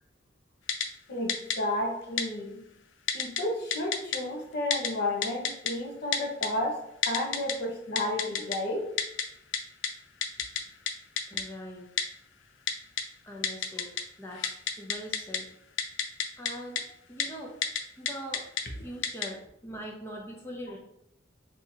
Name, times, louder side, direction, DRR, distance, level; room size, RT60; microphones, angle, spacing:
Typing, 0.7-0.9 1.3-1.6 2.2-2.3 3.1-3.4 3.7-4.2 4.7-4.9 5.2-5.7 6.1-6.5 7.0-7.5 8.0-8.6 9.0-9.2 9.5-9.6 9.8-9.9 10.2-10.6 10.9-11.0 11.2-11.4 12.0-12.1 12.7-13.0 13.4-14.0 14.3-15.4 15.8-16.5 16.8-16.9 17.2-17.3 17.6-17.8 18.1-18.6 19.0-19.3, left 7 dB, 75° left, 0.6 m, -28 dB
voice 1, 1.1-2.6 3.1-6.8 7.0-8.9, left 1 dB, 55° left, 1 dB, 1.0 m, -32 dB
voice 2, 11.3-11.9 13.2-15.5 16.4-16.8 17.1-17.6 18.0-18.4 18.8-20.8, equal, 10° left, -2 dB, 0.5 m, -42 dB
3.5 x 2.8 x 4.4 m, 0.81 s
head